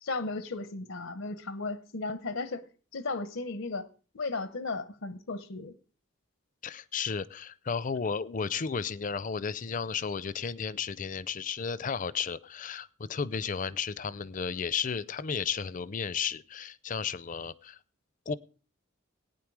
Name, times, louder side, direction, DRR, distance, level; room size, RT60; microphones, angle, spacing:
voice 1, 0.0-3.9 4.1-5.8, left 3 dB, 80° left, 0.8 m, -35 dB
voice 2, 6.6-17.8 18.3-18.4, left 6 dB, 40° left, 0.5 m, -33 dB
18.0 x 9.3 x 4.8 m
head